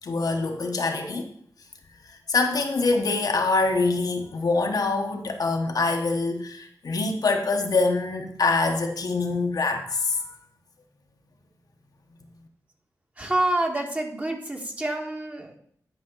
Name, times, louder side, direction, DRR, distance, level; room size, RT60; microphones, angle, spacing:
voice 1, 0.0-1.3 2.0-10.4, left 3 dB, 70° left, 3 dB, 1.1 m, -25 dB
voice 2, 13.2-15.6, right 1 dB, 20° right, 2 dB, 1.5 m, -27 dB
10.5 x 5.2 x 3.9 m, 0.64 s
wide cardioid pair, 70°, 7 cm